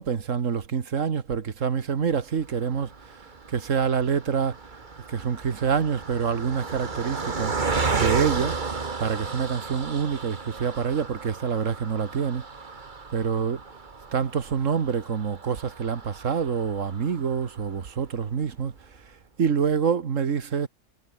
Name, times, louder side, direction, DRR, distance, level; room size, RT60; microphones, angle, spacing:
voice 1, 0.0-4.6 5.1-7.5 7.9-8.6 9.0-12.4 13.1-13.6 14.1-20.7, right 6 dB, 75° right, 1.8 m, -26 dB
Car passing by, 2.4-17.9 18.4-18.5 18.8-19.0, right 4 dB, 40° right, 1.7 m, -34 dB
omnidirectional pair, 1.3 m